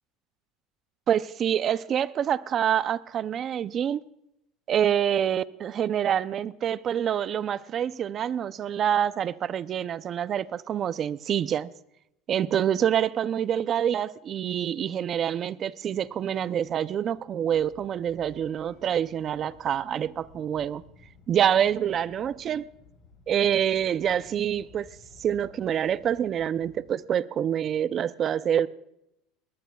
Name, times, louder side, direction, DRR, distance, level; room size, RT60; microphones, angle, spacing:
voice 1, 1.1-4.0 4.7-11.7 12.3-20.8 21.3-22.7 23.3-24.9 25.2-28.7, right 9 dB, 35° right, 0.5 m, -26 dB
sound 1, 15.9-26.9, left 4 dB, 45° left, 6.0 m, -56 dB
21.0 x 20.0 x 2.3 m
cardioid pair, 145°, 0 cm